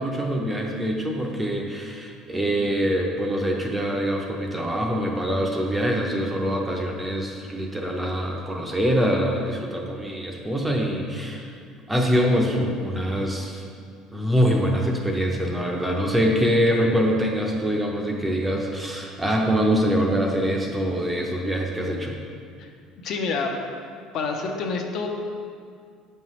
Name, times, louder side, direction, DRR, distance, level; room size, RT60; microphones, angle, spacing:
voice 1, 0.0-11.5 11.9-13.7 14.1-22.2, equal, 5° right, 0 dB, 0.6 m, -24 dB
voice 2, 23.0-23.5 24.1-25.1, left 4 dB, 45° left, 3 dB, 0.7 m, -27 dB
8.6 x 5.6 x 3.1 m, 2.2 s
cardioid pair, 165°, 0 cm